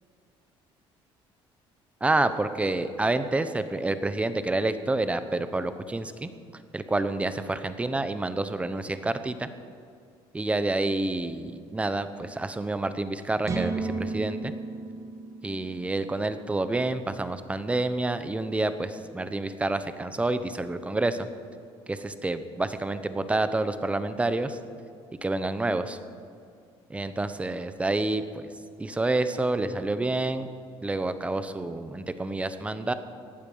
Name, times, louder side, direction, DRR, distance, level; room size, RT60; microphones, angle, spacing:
voice 1, 2.0-6.3 6.7-9.5 10.3-14.5 15.4-21.3 21.9-24.6 25.2-26.0 26.9-28.4 28.8-30.5 30.8-32.9, right 2 dB, 10° right, 11 dB, 0.9 m, -28 dB
sound 1, 13.4-17.2, right 3 dB, 30° right, 1.9 m, -34 dB
18.0 x 12.0 x 5.6 m, 2.3 s
cardioid pair, 130°, 10 cm